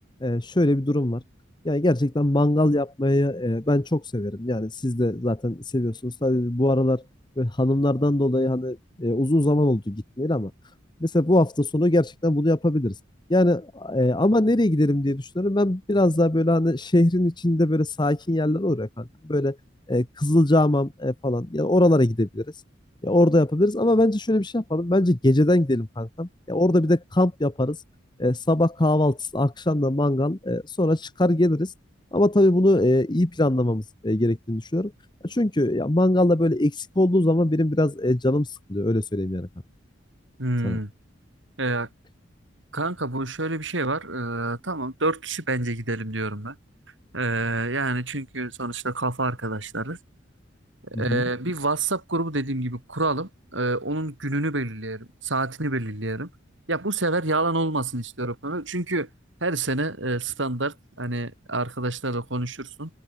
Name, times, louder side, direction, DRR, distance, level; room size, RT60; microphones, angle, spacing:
voice 1, 0.2-1.2 1.6-7.0 7.4-10.5 11.0-12.9 13.3-19.6 19.9-22.5 23.0-27.8 28.2-31.7 32.1-34.9 35.2-39.5 40.6-40.8 50.9-51.2, left 1 dB, 25° left, 1.0 m, -22 dB
voice 2, 40.4-40.9 41.6-41.9 42.7-46.5 47.1-50.0 51.0-56.3 56.7-59.1 59.4-62.9, right 2 dB, 75° right, 6.8 m, -27 dB
head